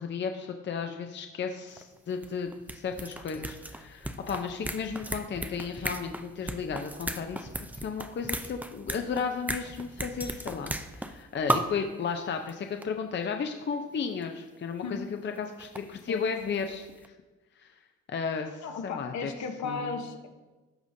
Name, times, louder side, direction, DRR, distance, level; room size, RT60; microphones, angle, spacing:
voice 1, 0.0-16.8 17.6-17.7 18.1-19.3 19.6-20.1, left 5 dB, 40° left, 5 dB, 0.6 m, -34 dB
sound 1, 1.8-1.9 2.1-11.2 11.5-11.8 12.5-12.6 12.8-12.9 14.2-14.3 15.4-16.7 17.0-17.1, right 1 dB, 5° right, 0.4 m, -35 dB
voice 2, 18.6-20.3, left 5 dB, 65° left, 5 dB, 1.0 m, -35 dB
14.0 x 4.9 x 2.7 m, 1.2 s
cardioid pair, 90°, 30 cm